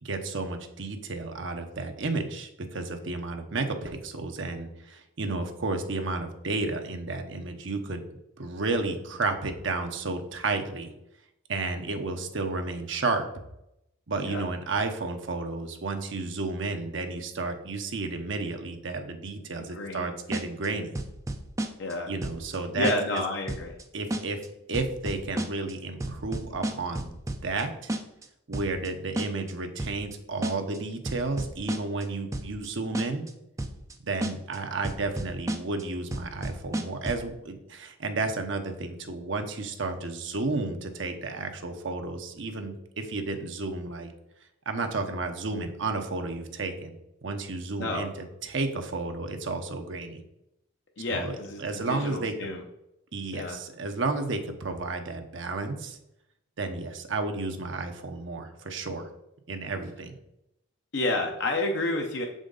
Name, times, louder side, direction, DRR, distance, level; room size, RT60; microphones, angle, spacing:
voice 1, 0.0-8.0 8.4-10.9 11.5-13.3 14.1-20.9 22.1-23.2 23.9-24.4 24.7-27.1 27.4-27.9 28.5-33.2 34.0-44.1 44.7-46.9 47.2-48.1 48.4-50.2 51.1-52.3 53.1-56.0 56.6-59.1 59.5-60.1, right 3 dB, 60° right, 5 dB, 0.8 m, -32 dB
voice 2, 19.6-20.1 21.8-22.1 22.8-23.7 47.8-48.1 51.0-52.6 53.3-53.6 60.9-62.2, left 2 dB, 55° left, 2 dB, 0.7 m, -30 dB
sound 1, 20.3-20.7 20.9-21.9 22.2-22.6 22.8-23.2 23.5-23.8 24.1-24.5 24.7-25.7 26.0-27.6 27.9-28.2 28.5-28.9 29.2-29.5 29.8-30.1 30.4-30.8 31.1-32.0 32.3-32.7 32.9-33.3 33.6-33.9 34.2-34.6 34.8-35.8 36.1-37.3, right 1 dB, 15° right, 0.4 m, -32 dB
6.3 x 5.1 x 3.9 m, 0.84 s
head